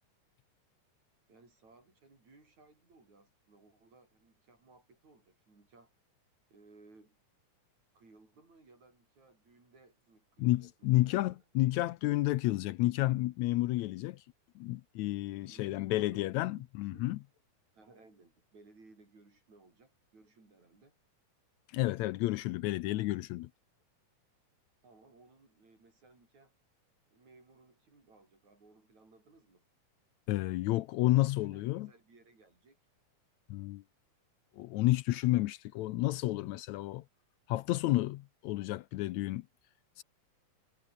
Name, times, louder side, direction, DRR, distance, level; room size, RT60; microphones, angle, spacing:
voice 1, 1.3-5.9 6.5-7.2 7.9-11.5 15.3-17.1 17.7-21.0 24.8-26.6 27.1-29.7 30.9-32.8, right 3 dB, 65° right, 9.5 m, -61 dB
voice 2, 10.4-14.2 14.6-17.2 21.7-23.5 30.3-31.9 33.5-33.8 34.6-37.0 37.5-39.5 40.0-40.1, left 17 dB, 80° left, 1.8 m, -31 dB
omnidirectional pair, 3.5 m